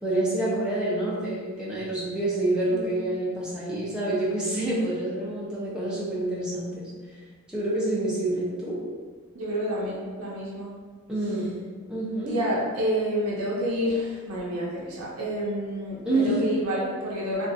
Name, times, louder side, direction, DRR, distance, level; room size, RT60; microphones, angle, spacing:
voice 1, 0.0-6.7 7.5-8.8 11.1-11.5 11.9-12.3 16.0-16.4, right 1 dB, 5° right, -9 dB, 0.6 m, -27 dB
voice 2, 9.3-10.7 12.3-17.5, equal, 80° right, -5 dB, 0.6 m, -29 dB
2.7 x 2.4 x 2.5 m, 1.5 s
head